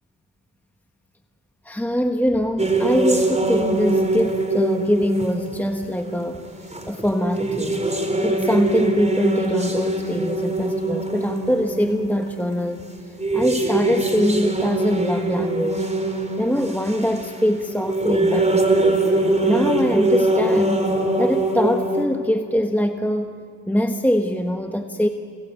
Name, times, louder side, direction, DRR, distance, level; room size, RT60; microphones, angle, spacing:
voice 1, 1.6-7.8 8.2-15.9 16.4-19.0 19.4-20.9 21.2-23.4 23.7-25.1, equal, 5° left, 5 dB, 1.4 m, -23 dB
sound 1, 2.6-22.0, right 2 dB, 15° right, 4.2 m, -23 dB
29.0 x 20.5 x 8.2 m, 2.4 s
supercardioid pair, 50°, 41 cm